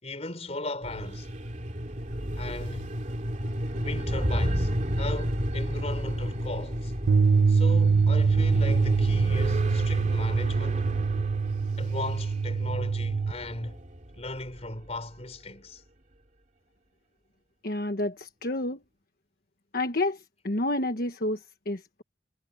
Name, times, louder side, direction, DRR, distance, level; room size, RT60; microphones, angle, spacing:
voice 1, 0.0-1.3 2.3-3.0 3.7-6.9 7.5-10.9 11.8-13.8 14.1-15.8, left 2 dB, 35° left, 4.6 m, -37 dB
sound 1, 0.8-14.9, equal, 40° right, 2.6 m, -32 dB
Bass guitar, 7.1-13.3, right 5 dB, 70° right, 0.4 m, -24 dB
voice 2, 17.6-18.8 19.7-22.0, left 2 dB, 50° left, 1.3 m, -30 dB
head